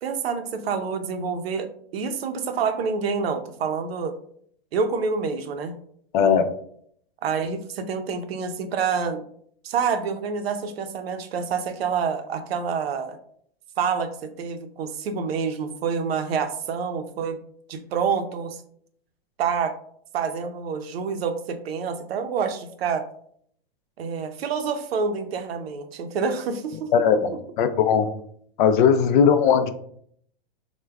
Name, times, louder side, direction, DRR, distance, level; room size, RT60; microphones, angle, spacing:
voice 1, 0.0-4.2 4.7-5.7 7.2-9.2 9.6-13.2 13.8-17.4 17.7-18.6 19.4-19.7 20.1-23.0 24.0-26.9, right 6 dB, 85° right, 8 dB, 0.5 m, -27 dB
voice 2, 6.1-6.5 26.9-28.1 28.6-29.7, left 7 dB, 55° left, 9 dB, 0.4 m, -19 dB
4.4 x 2.2 x 2.3 m, 0.66 s
hypercardioid pair, 145°, 30 cm